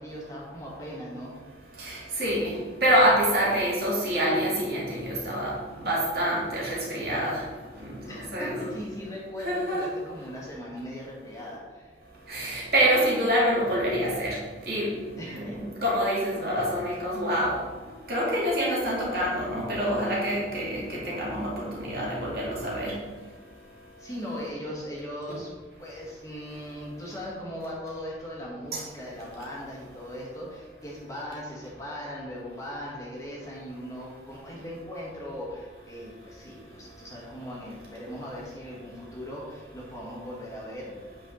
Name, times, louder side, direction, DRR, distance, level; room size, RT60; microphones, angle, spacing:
voice 1, 0.0-1.3 8.1-12.0 15.2-15.6 24.0-25.5 25.8-40.9, equal, 20° left, -5 dB, 1.7 m, -39 dB
voice 2, 1.8-2.5 2.8-7.4 7.8-8.7 9.4-9.9 12.3-14.4 14.7-14.9 15.3-17.6 18.1-22.9 28.7-28.8, equal, 55° right, -5 dB, 2.6 m, -26 dB
8.4 x 5.8 x 3.9 m, 1.4 s
head